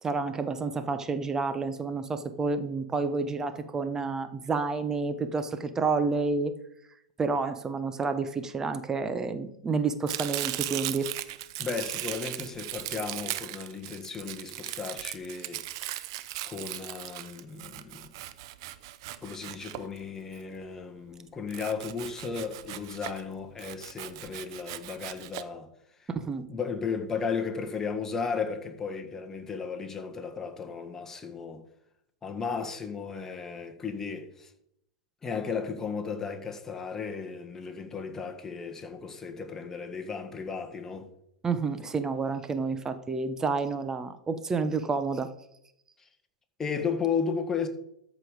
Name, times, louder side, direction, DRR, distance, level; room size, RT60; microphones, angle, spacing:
voice 1, 0.0-6.5 7.2-11.1 26.2-26.4 41.4-45.3, right 4 dB, 20° right, 0.9 m, -29 dB
Domestic sounds home sounds, 10.1-20.4 21.5-23.2 23.6-25.4, right 15 dB, 55° right, 0.7 m, -38 dB
voice 2, 11.6-15.6 16.5-18.1 19.2-25.7 26.0-26.1 26.5-31.6 32.2-34.5 35.2-41.1 46.0-46.1 46.6-47.7, left 5 dB, 15° left, 1.6 m, -34 dB
13.5 x 5.2 x 5.0 m
hypercardioid pair, 100°, 3 cm